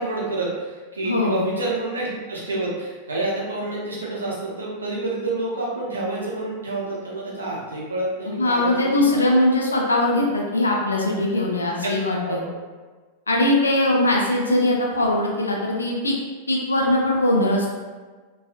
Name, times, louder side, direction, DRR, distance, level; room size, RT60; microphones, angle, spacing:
voice 1, 0.0-9.4 11.8-11.9 12.2-12.5, right 2 dB, 75° right, -4 dB, 0.6 m, -28 dB
voice 2, 1.0-1.4 8.3-12.4 13.3-16.1 16.5-17.7, left 1 dB, 75° left, -2 dB, 0.3 m, -21 dB
2.7 x 2.2 x 2.3 m, 1.4 s
figure-of-eight pair, 90°, 0 cm